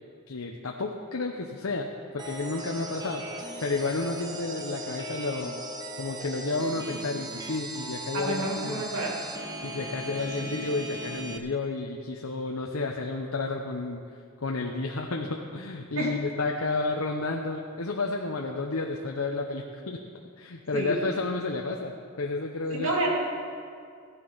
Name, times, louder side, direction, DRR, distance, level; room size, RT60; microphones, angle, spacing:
voice 1, 0.3-5.6 6.0-8.8 9.6-14.0 14.4-22.9, left 3 dB, 80° left, 1 dB, 0.9 m, -31 dB
sound 1, 2.2-11.4, right 1 dB, 20° right, 0.9 m, -38 dB
voice 2, 8.1-9.3 10.4-10.5 16.0-16.2 20.7-21.0 22.7-23.1, right 1 dB, 70° right, -2 dB, 2.8 m, -29 dB
15.0 x 11.0 x 5.6 m, 2.3 s
head